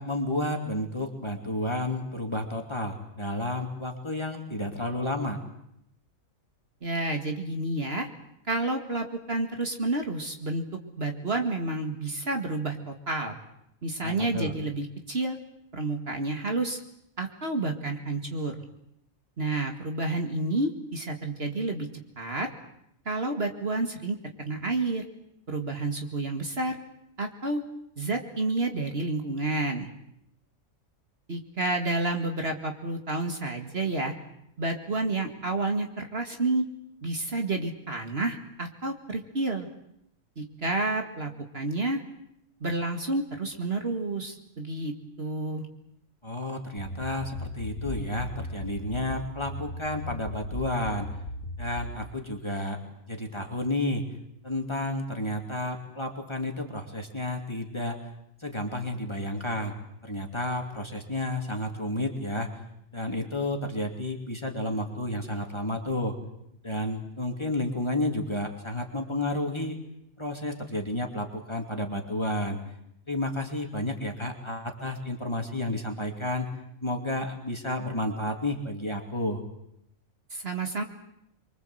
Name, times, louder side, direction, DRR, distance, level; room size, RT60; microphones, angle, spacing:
voice 1, 0.0-5.4 14.0-14.5 46.2-51.1 51.6-52.8 53.1-54.0 54.4-58.0 58.4-59.7 60.0-62.5 62.9-66.2 66.6-69.8 70.2-72.6 73.1-76.5 76.8-79.4, left 1 dB, 20° left, 3 dB, 2.9 m, -31 dB
voice 2, 6.8-8.1 8.5-10.6 11.0-13.4 13.8-15.4 15.7-16.8 17.2-18.5 19.4-21.9 22.2-22.5 23.1-25.0 25.5-26.8 27.2-27.6 28.0-29.9 31.3-34.1 34.6-36.7 37.0-39.7 40.4-42.0 42.6-44.9 45.2-45.7 80.3-80.8, right 2 dB, 45° right, 4 dB, 2.3 m, -30 dB
sound 1, 46.8-52.0, left 1 dB, 85° left, 2.2 m, -37 dB
25.5 x 23.5 x 7.9 m, 0.76 s
omnidirectional pair, 1.4 m